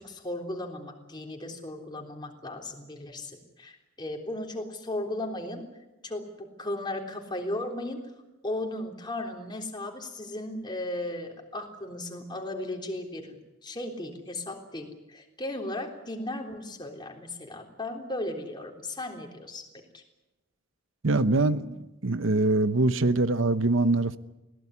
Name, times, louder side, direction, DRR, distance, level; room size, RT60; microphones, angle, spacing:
voice 1, 0.0-5.6 6.0-8.0 8.4-13.4 13.6-19.7 19.9-20.0, left 1 dB, 20° left, 2 dB, 3.6 m, -36 dB
voice 2, 21.0-24.2, right 2 dB, 65° right, 13 dB, 1.0 m, -24 dB
21.5 x 17.5 x 9.8 m, 1.0 s
head